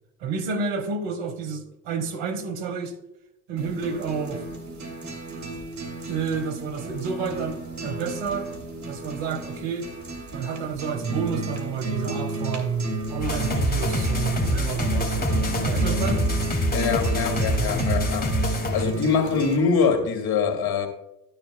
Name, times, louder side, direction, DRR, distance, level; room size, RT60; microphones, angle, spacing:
voice 1, 0.2-2.9 3.5-4.5 6.1-8.5 8.9-9.9 10.3-16.3, right 5 dB, 65° right, 1.5 m, -29 dB
sound 1, 3.6-19.6, right 2 dB, 35° right, 2.8 m, -32 dB
sound 2, 13.2-18.9, equal, 20° left, 2.2 m, -25 dB
voice 2, 16.7-18.3 18.7-20.9, left 5 dB, 50° left, 2.5 m, -23 dB
12.5 x 10.5 x 2.3 m
hypercardioid pair, 60°, 48 cm